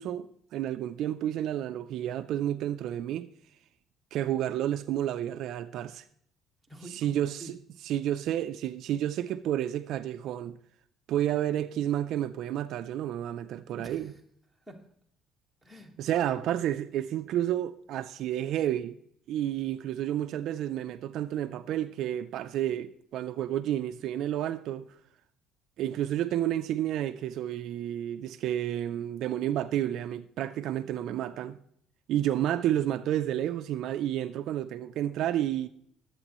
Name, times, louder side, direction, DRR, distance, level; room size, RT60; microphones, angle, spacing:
voice 1, 0.0-3.3 4.1-6.0 7.0-7.6 7.8-10.6 11.1-14.1 16.0-19.0 19.3-24.9 25.8-31.6 32.1-35.7, right 11 dB, 60° right, 0.4 m, -30 dB
voice 2, 6.7-7.5 13.7-14.2 14.5-14.9 15.6-15.9, right 1 dB, ahead, 1.5 m, -47 dB
21.5 x 8.2 x 3.0 m
cardioid pair, 175°, 0 cm